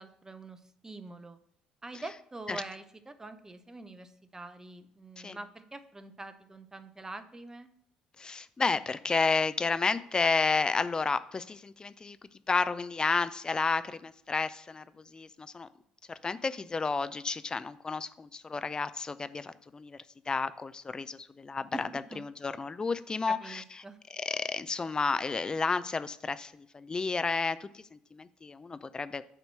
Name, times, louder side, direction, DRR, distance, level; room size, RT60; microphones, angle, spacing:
voice 1, 0.0-1.4 1.8-7.7 21.7-21.8 22.1-22.3 23.3-24.0, right 2 dB, 15° right, 10 dB, 0.6 m, -45 dB
voice 2, 8.2-12.2 12.5-15.7 16.2-23.6 24.1-29.3, left 4 dB, 25° left, 13 dB, 0.4 m, -31 dB
8.2 x 2.9 x 5.6 m, 0.70 s
figure-of-eight pair, 50°, 3 cm